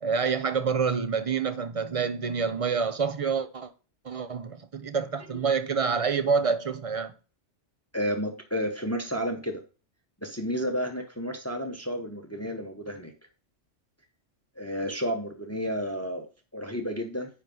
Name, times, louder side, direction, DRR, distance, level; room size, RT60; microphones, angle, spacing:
voice 1, 0.0-3.7 4.0-7.1, right 5 dB, 35° right, 0.6 m, -27 dB
voice 2, 7.9-9.6 10.2-13.1 14.6-16.3 16.5-17.3, equal, 15° left, 0.9 m, -31 dB
9.9 x 3.3 x 5.3 m
omnidirectional pair, 1.2 m